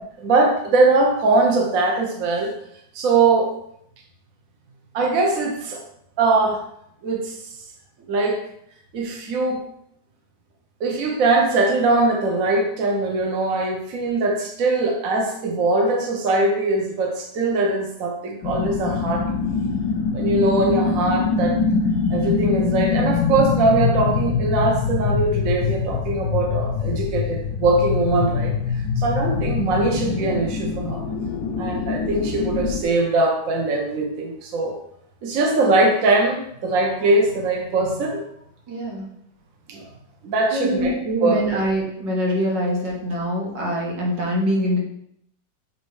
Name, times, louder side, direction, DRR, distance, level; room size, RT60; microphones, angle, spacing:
voice 1, 0.2-2.5 2.9-3.6 4.9-5.8 6.2-6.6 7.0-7.4 8.1-8.4 8.9-9.6 10.8-19.3 20.1-21.6 22.1-31.0 31.5-34.8 35.2-38.2 39.7-39.9 40.2-40.9 41.2-41.4, right 3 dB, 55° right, 1 dB, 1.3 m, -21 dB
sound 1, 18.4-32.8, left 5 dB, 70° left, 1.0 m, -24 dB
voice 2, 38.7-39.1 40.5-44.8, equal, 85° right, -2 dB, 2.1 m, -24 dB
7.2 x 3.1 x 4.7 m, 0.73 s
omnidirectional pair, 1.9 m